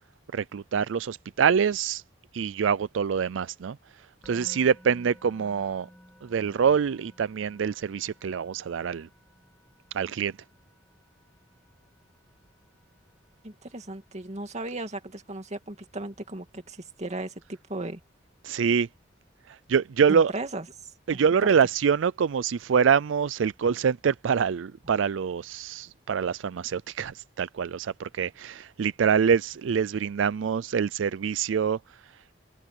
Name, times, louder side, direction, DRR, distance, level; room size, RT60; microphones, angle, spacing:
voice 1, 0.3-2.0 2.3-3.8 4.3-5.9 6.2-9.1 9.9-10.3 18.4-18.9 19.7-20.3 21.1-31.8, right 7 dB, 85° right, 0.4 m, -25 dB
Musical instrument, 4.2-15.3, equal, 5° left, 7.5 m, -56 dB
voice 2, 13.4-18.0 20.1-20.7 21.4-21.5, right 2 dB, 40° right, 2.5 m, -36 dB
head